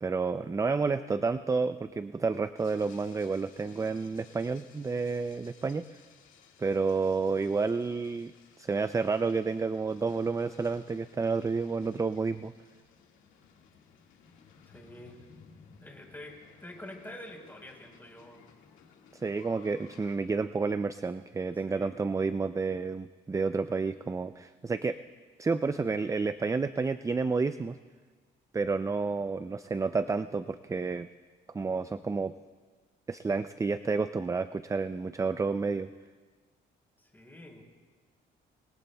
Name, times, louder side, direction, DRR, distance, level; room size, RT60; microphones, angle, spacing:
voice 1, 0.0-5.9 6.6-8.3 8.6-12.5 19.1-25.0 25.4-27.8 28.5-31.1 31.5-32.3 33.1-35.9, right 4 dB, 15° right, 11 dB, 0.4 m, -30 dB
sound 1, 2.6-20.2, left 6 dB, 85° left, 1.9 m, -58 dB
voice 2, 14.6-15.3 15.8-18.4 21.7-22.1 37.0-37.6, left 1 dB, 10° left, 0 dB, 4.2 m, -47 dB
26.5 x 21.5 x 2.3 m, 1.4 s
cardioid pair, 90°, 20 cm